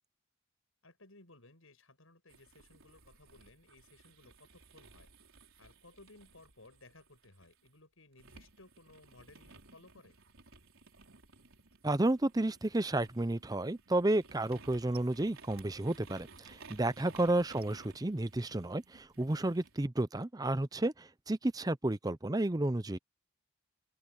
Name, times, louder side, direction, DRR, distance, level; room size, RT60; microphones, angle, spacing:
voice 1, 0.8-5.1 5.6-10.2 16.9-17.1, left 2 dB, 70° left, 6.8 m, -59 dB
sound 1, 2.3-7.7 8.2-19.8, right 4 dB, 70° right, 4.3 m, -58 dB
voice 2, 11.8-23.0, right 1 dB, 15° right, 0.6 m, -32 dB
open air
head